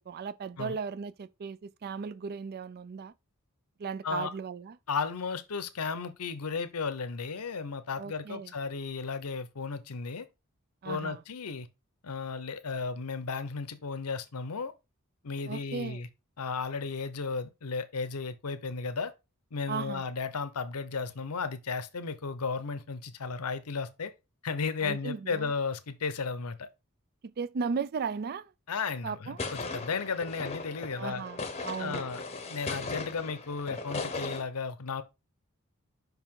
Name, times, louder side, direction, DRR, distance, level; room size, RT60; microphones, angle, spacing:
voice 1, 0.0-3.1 3.8-4.8 8.0-8.5 10.8-11.2 15.5-16.0 19.7-20.1 24.8-25.5 27.2-28.5 29.0-29.4 30.9-32.0, right 5 dB, 45° right, 0.4 m, -36 dB
voice 2, 4.9-10.3 10.8-11.7 12.0-14.7 15.2-16.1 16.4-19.1 19.5-24.1 24.4-26.7 28.7-31.2 31.8-32.2 32.5-35.0, left 5 dB, 80° left, 0.7 m, -34 dB
sound 1, 29.4-34.4, left 3 dB, 30° left, 0.8 m, -37 dB
5.5 x 4.7 x 3.7 m
head